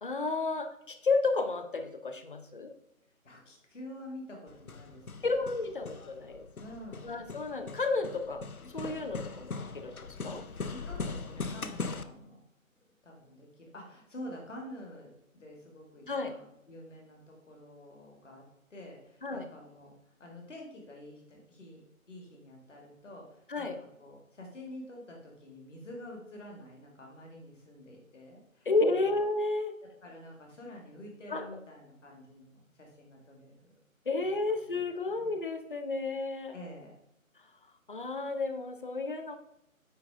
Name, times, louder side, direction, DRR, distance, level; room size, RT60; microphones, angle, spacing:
voice 1, 0.0-2.7 5.2-6.5 7.0-8.4 8.7-10.4 16.1-16.3 19.2-19.5 23.5-23.8 28.7-29.8 31.3-31.6 34.1-36.6 37.9-39.4, left 3 dB, 40° left, 8 dB, 0.8 m, -32 dB
voice 2, 3.2-5.3 6.6-7.1 10.8-12.4 13.0-18.4 18.7-19.9 20.2-21.8 22.1-23.7 24.0-29.1 30.0-33.8 34.5-35.3 36.5-36.9, left 1 dB, 60° left, 0 dB, 2.2 m, -48 dB
Hammer, 4.5-12.0, left 4 dB, 90° left, 0.7 m, -40 dB
8.8 x 5.0 x 3.6 m, 0.79 s
figure-of-eight pair, 150°, 42 cm